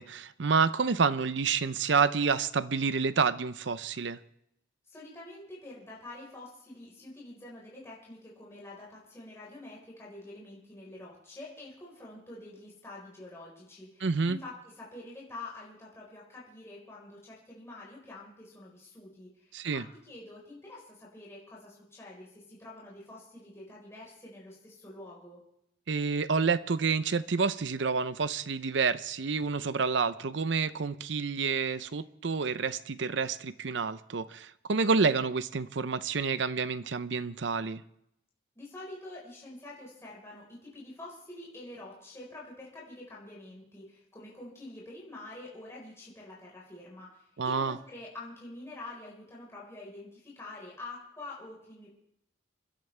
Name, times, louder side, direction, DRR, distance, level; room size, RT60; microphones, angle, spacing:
voice 1, 0.0-4.2 14.0-14.4 19.5-19.8 25.9-37.8 47.4-47.8, right 5 dB, 65° right, 0.6 m, -29 dB
voice 2, 4.9-25.4 38.5-51.9, left 2 dB, 15° left, 4.4 m, -47 dB
28.5 x 12.0 x 3.3 m
head